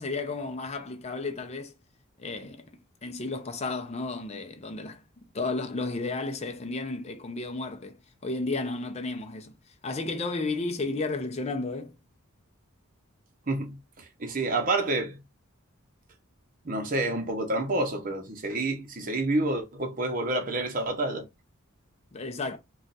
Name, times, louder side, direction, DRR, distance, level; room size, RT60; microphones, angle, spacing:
voice 1, 0.0-1.7 2.2-8.0 8.2-9.5 9.8-11.9 22.1-22.6, left 3 dB, 30° left, 0.5 m, -33 dB
voice 2, 13.5-13.8 14.2-15.2 16.6-21.3, right 2 dB, 40° right, 0.8 m, -28 dB
2.4 x 2.3 x 4.0 m
head